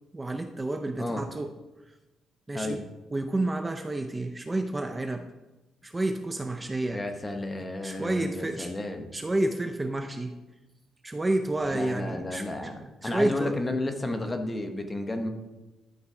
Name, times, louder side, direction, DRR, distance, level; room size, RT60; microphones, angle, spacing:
voice 1, 0.1-1.5 2.5-2.9 3.1-5.3 5.8-7.0 7.8-8.7 9.1-10.3 11.0-13.5, right 2 dB, 20° right, 6 dB, 0.6 m, -30 dB
voice 2, 6.9-9.1 11.7-15.3, left 2 dB, 20° left, 6 dB, 1.1 m, -32 dB
12.0 x 4.0 x 4.9 m, 1.1 s
cardioid pair, 90°, 0 cm